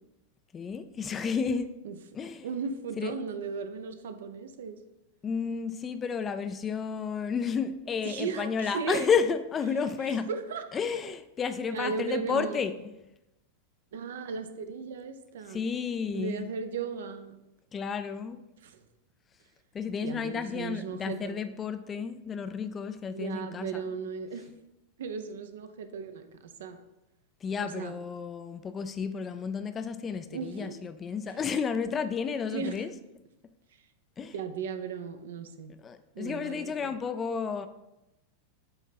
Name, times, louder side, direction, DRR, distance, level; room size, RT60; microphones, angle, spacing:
voice 1, 0.5-1.7 2.1-2.5 3.0-3.1 5.2-10.3 10.7-12.9 15.5-16.5 17.7-18.4 19.7-23.9 27.4-32.9 34.2-34.3 35.8-37.7, left 6 dB, 20° left, 10 dB, 0.4 m, -32 dB
voice 2, 2.4-4.8 8.0-9.1 10.0-10.6 11.7-12.6 13.9-15.6 16.1-17.4 18.6-18.9 20.0-21.4 23.1-24.5 25.0-26.8 27.6-27.9 30.3-30.8 32.5-32.8 34.3-35.7 36.1-36.9, right 5 dB, 60° right, 8 dB, 0.5 m, -36 dB
7.7 x 3.0 x 4.2 m, 0.94 s
figure-of-eight pair, 90°, 0 cm